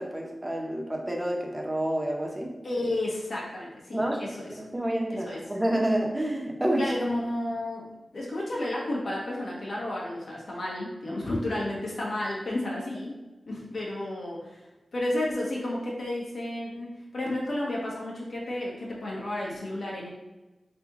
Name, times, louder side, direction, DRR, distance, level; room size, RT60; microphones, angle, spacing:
voice 1, 0.0-2.5 3.9-4.2 4.6-6.9, right 1 dB, 15° right, 0 dB, 0.8 m, -28 dB
voice 2, 2.6-4.6 5.1-5.4 6.8-13.1 13.5-14.6 14.9-20.1, left 1 dB, 65° left, -5 dB, 1.2 m, -32 dB
3.3 x 3.1 x 3.6 m, 1.1 s
wide cardioid pair, 75°, 0 cm